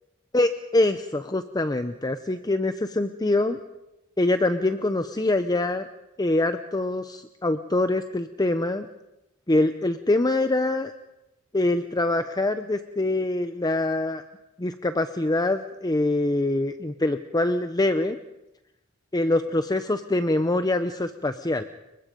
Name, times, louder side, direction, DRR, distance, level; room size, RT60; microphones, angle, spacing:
voice 1, 0.3-3.6 4.2-5.9 6.2-8.9 9.5-10.9 11.5-14.2 14.6-18.2 19.1-21.6, left 2 dB, 20° left, 9 dB, 0.7 m, -24 dB
29.5 x 23.5 x 5.2 m, 0.90 s
head